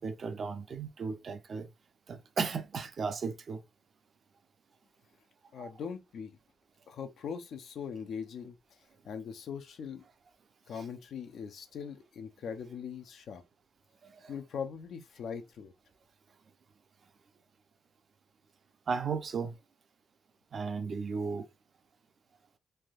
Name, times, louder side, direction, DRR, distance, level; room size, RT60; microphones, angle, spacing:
voice 1, 0.0-1.7 2.1-3.6 5.6-5.7 14.0-14.3 18.9-19.5 20.5-21.5, right 5 dB, 40° right, 0.5 m, -35 dB
voice 2, 5.5-6.4 6.9-8.6 9.0-10.0 10.7-13.4 14.3-15.7, left 6 dB, 60° left, 0.5 m, -41 dB
3.4 x 2.6 x 2.3 m
cardioid pair, 145°, 0 cm